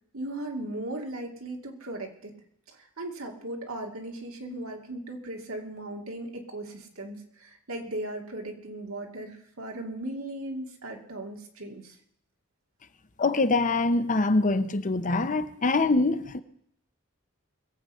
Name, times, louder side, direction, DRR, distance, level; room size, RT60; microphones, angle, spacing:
voice 1, 0.1-2.3 2.7-12.0, right 1 dB, 85° right, 2.5 m, -37 dB
voice 2, 13.2-16.4, left 3 dB, 40° left, 0.8 m, -24 dB
21.5 x 8.0 x 5.5 m
head